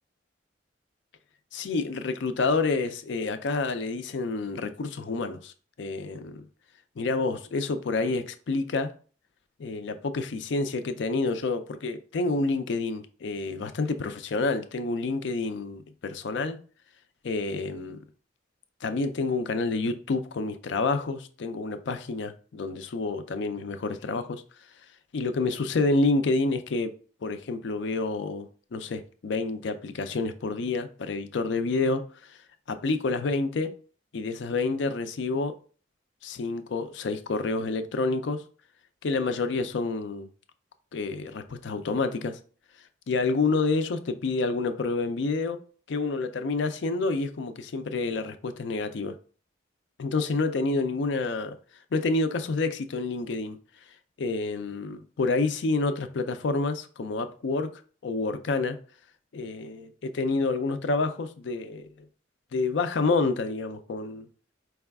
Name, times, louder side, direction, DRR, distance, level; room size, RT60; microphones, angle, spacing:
voice 1, 1.5-5.5 5.8-6.5 7.0-8.9 9.6-16.6 17.2-18.0 18.8-24.4 25.1-26.9 27.2-32.4 32.7-33.7 34.1-35.6 36.2-38.4 39.0-40.3 40.9-42.4 43.1-45.6 45.9-49.1 50.0-51.6 51.9-53.6 54.2-57.7 58.0-58.8 59.3-61.9 62.5-64.3, left 3 dB, 65° left, 0.4 m, -28 dB
4.7 x 2.3 x 3.4 m
head